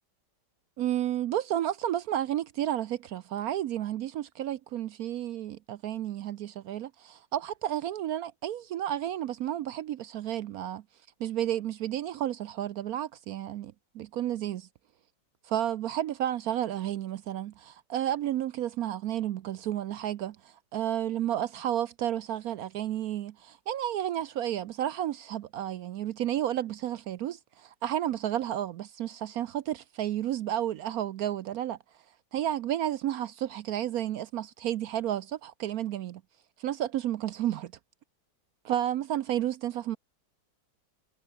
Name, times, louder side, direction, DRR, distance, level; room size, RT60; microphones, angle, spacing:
voice 1, 0.8-10.8 11.2-14.7 15.4-31.8 32.3-36.2 36.6-37.7 38.6-40.0, right 11 dB, 70° right, 0.9 m, -32 dB
omnidirectional pair, 1.9 m